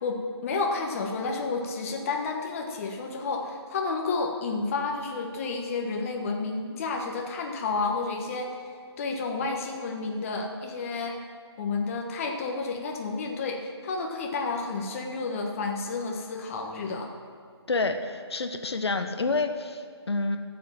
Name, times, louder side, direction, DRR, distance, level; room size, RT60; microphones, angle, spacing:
voice 1, 0.0-8.7 9.0-11.2 11.6-17.1, left 4 dB, 30° left, 1 dB, 1.4 m, -31 dB
voice 2, 17.7-20.4, left 3 dB, 70° left, 7 dB, 1.1 m, -28 dB
13.0 x 7.6 x 7.4 m, 2.1 s
figure-of-eight pair, 150°, 14 cm